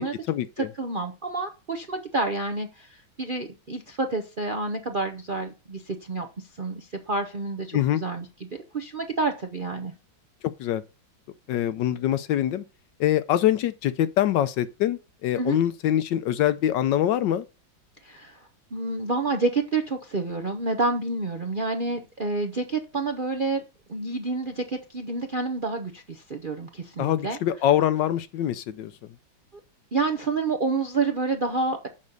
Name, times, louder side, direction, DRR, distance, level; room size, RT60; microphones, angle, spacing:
voice 1, 0.0-0.7 7.7-8.0 10.4-10.8 11.5-12.6 13.0-17.4 27.0-28.9, left 11 dB, 75° left, 1.2 m, -24 dB
voice 2, 0.6-9.9 15.4-15.6 18.0-18.4 18.7-23.6 23.9-27.4 29.9-31.9, right 3 dB, 50° right, 0.6 m, -29 dB
7.3 x 5.4 x 6.6 m
omnidirectional pair, 2.1 m